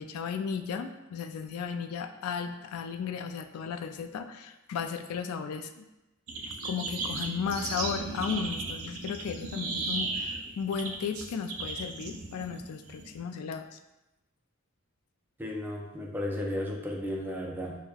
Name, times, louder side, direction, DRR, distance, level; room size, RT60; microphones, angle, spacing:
voice 1, 0.0-5.9 6.6-13.8, left 6 dB, 85° left, 8 dB, 0.3 m, -35 dB
sound 1, 6.3-13.2, right 3 dB, 75° right, 0.6 m, -35 dB
voice 2, 15.4-17.8, left 1 dB, 10° right, -1 dB, 0.4 m, -34 dB
6.0 x 2.2 x 2.3 m, 0.99 s
head